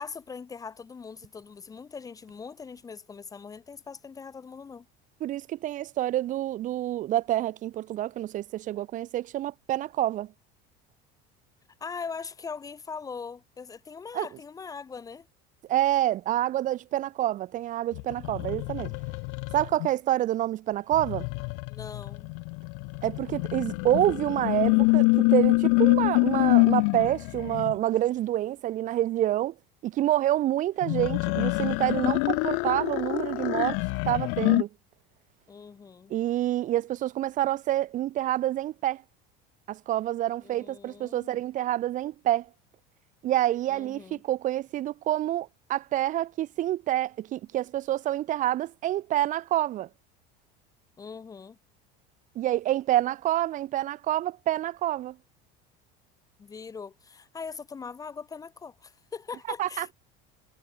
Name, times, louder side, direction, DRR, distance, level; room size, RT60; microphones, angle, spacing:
voice 1, 0.0-4.9 11.8-15.3 21.7-22.4 35.5-36.1 40.4-41.4 43.7-44.2 51.0-51.6 56.4-59.9, left 5 dB, 15° left, 1.2 m, -41 dB
voice 2, 5.2-10.3 14.1-14.3 15.7-18.9 19.5-21.2 23.0-29.5 29.8-33.8 34.1-34.7 36.1-39.0 39.7-42.5 43.2-49.9 52.3-55.1 59.6-59.9, right 13 dB, 40° right, 1.2 m, -27 dB
sound 1, 17.9-19.9 20.9-27.7 30.8-34.6, left 40 dB or more, 65° left, 0.5 m, -25 dB
cardioid pair, 155°, 21 cm